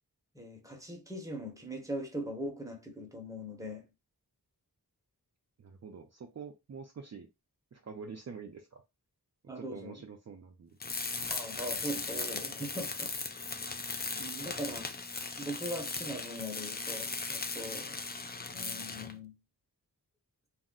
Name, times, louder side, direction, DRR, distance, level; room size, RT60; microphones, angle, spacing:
voice 1, 0.3-3.8 9.5-10.0 11.3-13.1 14.1-14.8 15.4-18.0 18.5-19.3, equal, 10° right, 0.7 m, -40 dB
voice 2, 5.6-7.3 7.7-8.8 9.5-10.8 12.5-12.7 13.9-14.1, right 5 dB, 45° right, 0.4 m, -47 dB
Tools, 10.8-19.2, left 4 dB, 25° left, 0.3 m, -38 dB
2.4 x 2.0 x 3.6 m
wide cardioid pair, 70°, 39 cm